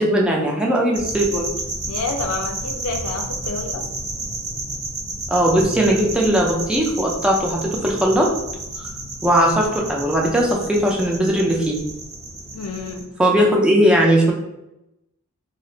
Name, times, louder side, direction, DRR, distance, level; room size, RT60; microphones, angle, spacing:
voice 1, 0.0-1.5 5.3-8.3 9.2-11.8 13.2-14.3, equal, 5° right, -2 dB, 0.4 m, -18 dB
sound 1, 0.9-13.0, right 2 dB, 60° right, 0.8 m, -31 dB
voice 2, 1.9-3.9 12.5-13.1, left 3 dB, 75° left, 4 dB, 0.5 m, -29 dB
2.4 x 2.0 x 3.8 m, 0.89 s
head